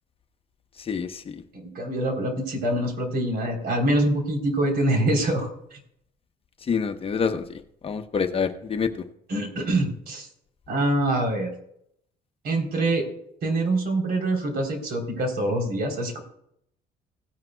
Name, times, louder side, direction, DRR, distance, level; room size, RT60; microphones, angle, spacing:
voice 1, 0.9-1.2 6.7-7.4 7.8-8.9, left 6 dB, 35° left, 8 dB, 0.9 m, -26 dB
voice 2, 1.5-5.8 9.3-10.3 10.7-11.5 12.4-13.1 13.4-16.2, right 1 dB, 65° right, 3 dB, 3.5 m, -25 dB
17.0 x 10.5 x 2.2 m, 0.72 s
cardioid pair, 110°, 17 cm